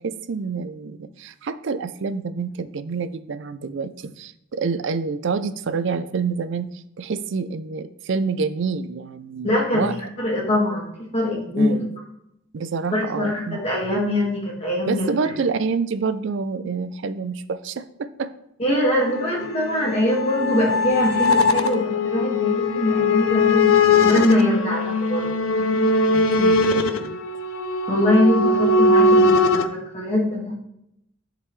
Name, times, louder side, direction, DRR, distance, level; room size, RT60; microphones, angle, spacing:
voice 1, 0.0-9.9 11.5-11.9 12.5-13.6 14.9-18.3 26.1-27.2, right 5 dB, 65° right, 13 dB, 0.4 m, -27 dB
voice 2, 9.4-9.9 10.2-11.8 12.9-15.1 18.6-25.8 27.9-30.5, left 1 dB, 30° left, -3 dB, 1.9 m, -23 dB
sound 1, 19.0-29.7, left 2 dB, 85° left, 0.6 m, -20 dB
11.0 x 3.8 x 3.2 m, 0.79 s
head